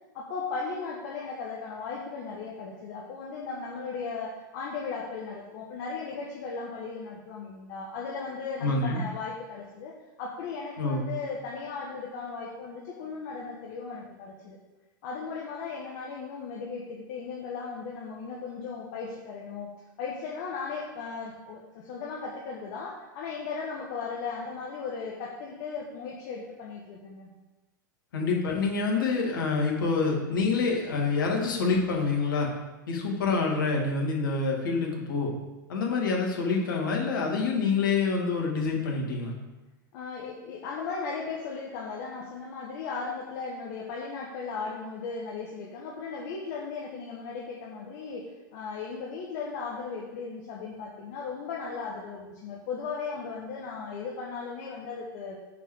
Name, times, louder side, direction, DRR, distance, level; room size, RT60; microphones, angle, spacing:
voice 1, 0.1-14.6 15.0-19.7 20.0-27.3 39.9-55.4, left 5 dB, 55° left, -3 dB, 1.4 m, -37 dB
voice 2, 8.6-9.0 10.8-11.1 28.1-32.5 32.9-35.3 35.7-39.3, left 4 dB, 70° left, -1 dB, 2.4 m, -27 dB
7.0 x 4.7 x 6.4 m, 1.1 s
hypercardioid pair, 95°, 11 cm